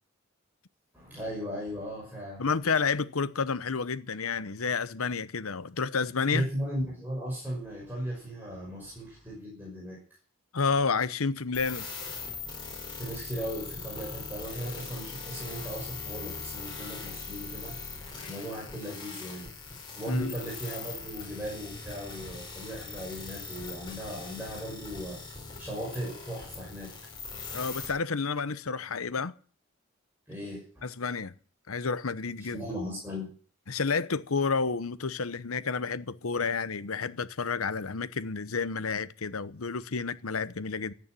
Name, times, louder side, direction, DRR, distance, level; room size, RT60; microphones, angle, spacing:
voice 1, 0.9-2.5 6.3-10.0 12.9-17.8 18.3-19.5 20.0-26.9 30.3-30.6 32.4-33.3, equal, 10° right, 6.1 m, -37 dB
voice 2, 2.4-6.5 10.5-11.9 18.2-18.3 20.1-20.3 27.5-29.3 30.8-31.3 31.7-32.6 33.7-40.9, left 5 dB, 90° left, 0.9 m, -30 dB
sound 1, 11.5-27.9, left 4 dB, 20° left, 5.4 m, -41 dB
14.0 x 9.5 x 9.1 m
head